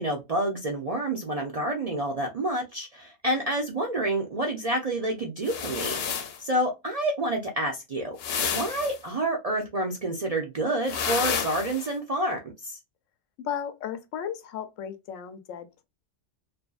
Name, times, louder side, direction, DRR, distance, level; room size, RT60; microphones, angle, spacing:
voice 1, 0.0-6.0 6.4-8.2 8.5-12.8, right 1 dB, 55° right, 0.4 m, -28 dB
sound 1, 5.4-6.4 8.2-9.0 10.8-11.9, left 7 dB, 60° left, 0.8 m, -30 dB
voice 2, 13.4-15.8, left 9 dB, 90° left, 1.0 m, -35 dB
2.6 x 2.5 x 2.3 m
omnidirectional pair, 1.3 m